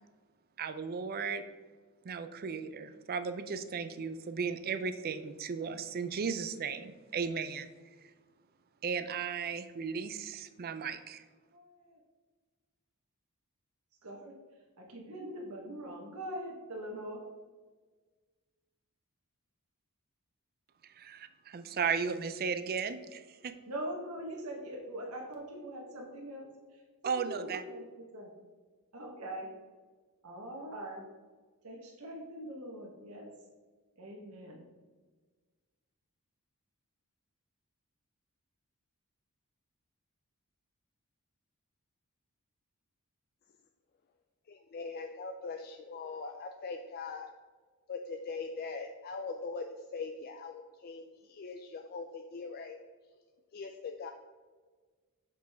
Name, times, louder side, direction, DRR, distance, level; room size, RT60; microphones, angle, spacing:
voice 1, 0.6-1.4 2.0-7.7 8.8-11.2 20.8-23.6 27.0-27.6, right 6 dB, 45° right, 11 dB, 0.4 m, -35 dB
voice 2, 11.5-12.0 14.0-14.3 14.8-17.2 23.7-26.5 27.0-27.8 28.1-28.3 28.9-29.5 30.2-31.0 31.6-33.3 34.0-34.6, right 1 dB, 75° right, -1 dB, 1.1 m, -42 dB
voice 3, 44.5-47.3 47.9-52.8 53.5-54.1, left 4 dB, 45° left, 5 dB, 0.4 m, -41 dB
6.7 x 5.1 x 3.4 m, 1.4 s
head